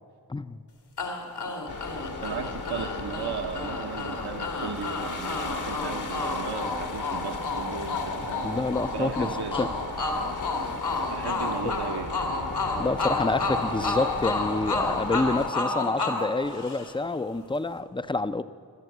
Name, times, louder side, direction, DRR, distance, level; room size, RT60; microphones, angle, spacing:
voice 1, 0.3-0.6 8.4-9.7 12.8-18.4, left 3 dB, 15° left, 13 dB, 0.5 m, -28 dB
sound 1, 1.0-17.2, left 2 dB, 80° left, 2.5 m, -31 dB
sound 2, 1.7-15.5, left 4 dB, 50° left, 1.1 m, -38 dB
voice 2, 2.2-8.5 8.9-9.6 11.1-12.1, right 6 dB, 75° right, 3 dB, 1.2 m, -36 dB
27.0 x 12.0 x 7.9 m, 2.4 s
wide cardioid pair, 120°, 40 cm